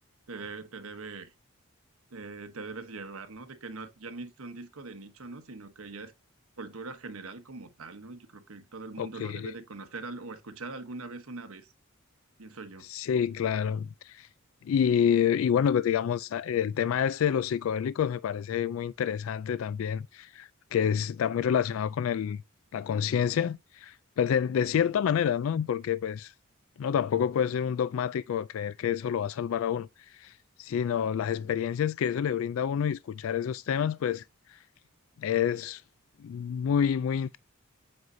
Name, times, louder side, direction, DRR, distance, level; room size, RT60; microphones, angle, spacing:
voice 1, 0.3-1.3 2.1-6.1 6.6-11.7 12.4-12.9, right 3 dB, 85° right, 1.1 m, -42 dB
voice 2, 9.0-9.5 12.9-14.3 14.6-22.4 22.7-26.3 26.8-29.9 30.2-30.3 30.6-34.2 34.5-34.6 35.2-35.8 36.2-37.4, left 8 dB, 70° left, 0.3 m, -28 dB
7.9 x 5.3 x 2.7 m
head